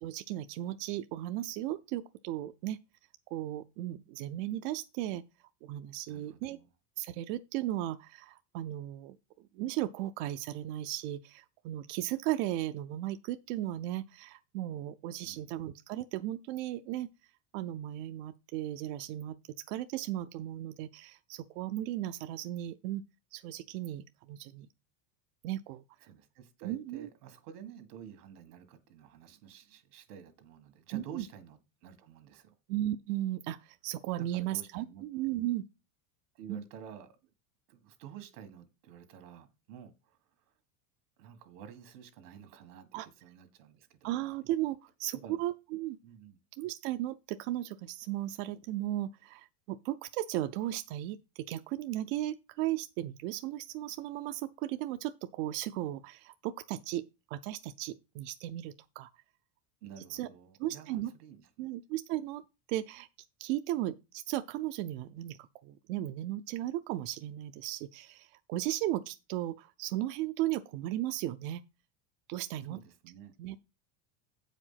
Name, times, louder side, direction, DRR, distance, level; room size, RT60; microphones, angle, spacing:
voice 1, 0.0-2.8 3.3-5.2 5.6-6.6 7.0-9.2 9.5-17.1 17.5-19.4 19.7-23.0 23.3-24.7 25.4-25.8 26.6-27.1 30.9-31.2 32.7-35.6 36.5-36.6 42.9-43.1 44.0-46.0 46.6-57.0 57.3-59.1 60.1-60.3 60.6-61.1 61.6-62.4 62.7-63.1 63.4-71.6 72.3-72.8 73.4-73.7, right 14 dB, 55° right, 0.5 m, -36 dB
voice 2, 6.1-6.7 15.2-15.6 26.0-32.5 34.2-35.0 36.3-37.2 37.7-40.5 41.2-44.2 45.1-45.4 46.0-46.4 59.8-61.7 72.7-73.3, right 8 dB, 85° right, 1.8 m, -51 dB
8.4 x 5.1 x 5.7 m
supercardioid pair, 155°, 45 cm